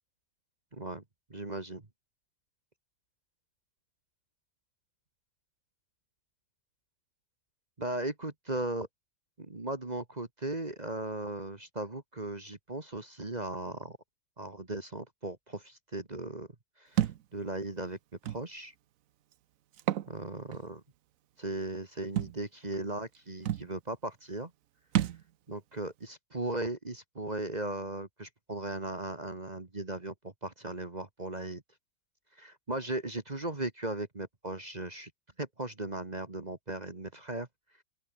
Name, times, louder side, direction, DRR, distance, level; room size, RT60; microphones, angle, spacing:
voice 1, 0.7-1.0 1.3-1.8 7.8-8.9 9.4-14.0 14.4-16.5 16.8-18.0 18.2-18.7 20.1-20.8 21.4-24.5 25.5-31.6 32.4-35.1 35.4-37.5, right 2 dB, 25° right, 1.8 m, -37 dB
Thump thud, 17.0-17.2 18.3-18.4 19.7-20.1 20.5-20.6 22.2-22.4 23.1-23.2 23.5-23.7 24.9-25.2, right 11 dB, 60° right, 1.0 m, -29 dB
open air
omnidirectional pair, 1.9 m